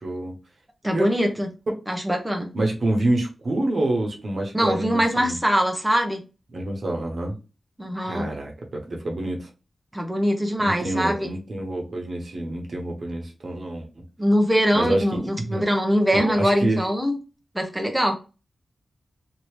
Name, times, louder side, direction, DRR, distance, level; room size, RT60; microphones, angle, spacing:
voice 1, 0.0-0.3 0.9-1.3 1.7-1.8 2.5-5.3 6.5-7.4 8.0-9.5 10.6-14.0 14.7-15.6 16.1-16.8, right 1 dB, 65° right, 0 dB, 1.1 m, -27 dB
voice 2, 0.8-1.5 1.9-2.5 4.5-6.2 7.8-8.3 9.9-11.3 14.2-17.2 17.5-18.1, equal, 10° right, 3 dB, 0.8 m, -22 dB
2.9 x 2.7 x 3.2 m, 0.30 s
cardioid pair, 65°, 0 cm